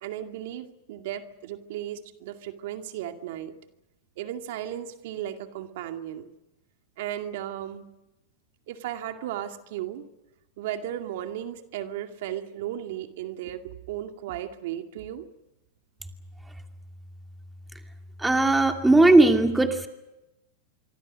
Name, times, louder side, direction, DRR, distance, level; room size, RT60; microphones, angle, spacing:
voice 1, 0.0-3.6 4.2-6.3 7.0-7.9 8.7-10.1 10.6-15.3, right 11 dB, 65° right, 5 dB, 2.3 m, -35 dB
voice 2, 18.2-19.9, right 2 dB, 5° right, 4 dB, 2.5 m, -18 dB
26.0 x 24.0 x 6.4 m, 0.94 s
hypercardioid pair, 120°, 0 cm